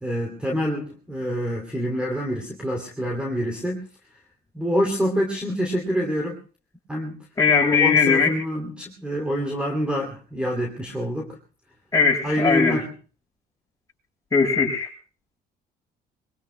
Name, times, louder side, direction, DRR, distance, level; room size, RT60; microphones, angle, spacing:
voice 1, 0.0-3.8 4.5-6.4 6.9-7.2 7.6-11.4 12.2-12.9, equal, 5° right, 0 dB, 2.7 m, -26 dB
voice 2, 7.4-8.4 11.9-12.8 14.3-14.9, left 5 dB, 20° left, -2 dB, 6.9 m, -19 dB
25.5 x 22.5 x 2.2 m, 0.39 s
cardioid pair, 110°, 17 cm